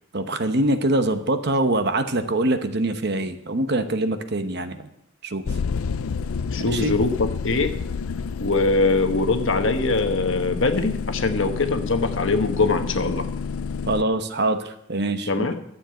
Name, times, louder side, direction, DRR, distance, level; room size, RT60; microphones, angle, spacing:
voice 1, 0.1-4.8 5.3-5.4 6.6-6.9 13.9-15.3, right 2 dB, 50° right, 9 dB, 0.9 m, -24 dB
sound 1, 5.4-14.0, left 5 dB, 80° left, 0.4 m, -29 dB
voice 2, 6.5-7.7 8.4-13.3 15.3-15.6, left 3 dB, 60° left, 7 dB, 1.1 m, -22 dB
12.0 x 7.4 x 7.7 m, 0.78 s
head